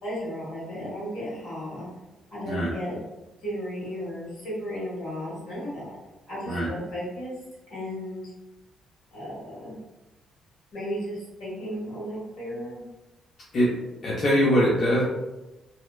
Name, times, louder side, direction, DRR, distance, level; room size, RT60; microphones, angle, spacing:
voice 1, 0.0-1.9 2.3-3.0 3.4-6.0 6.3-7.3 7.7-8.2 9.1-9.8 10.7-12.8, equal, 80° left, -7 dB, 1.5 m, -34 dB
voice 2, 14.0-15.0, equal, 55° left, -7 dB, 0.6 m, -22 dB
2.8 x 2.1 x 2.2 m, 1.0 s
cardioid pair, 90°, 0 cm